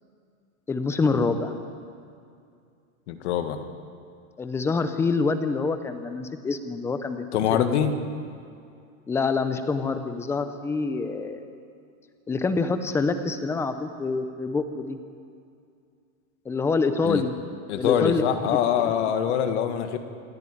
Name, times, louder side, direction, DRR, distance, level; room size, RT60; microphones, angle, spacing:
voice 1, 0.7-1.5 4.4-7.2 7.5-7.8 9.1-11.5 12.3-15.0 16.4-17.3 17.7-18.2, left 4 dB, 5° left, 9 dB, 0.6 m, -26 dB
voice 2, 3.1-3.6 7.3-7.9 17.0-17.2 17.7-20.0, left 9 dB, 55° left, 8 dB, 1.8 m, -24 dB
27.5 x 9.5 x 9.9 m, 2.4 s
supercardioid pair, 160°, 41 cm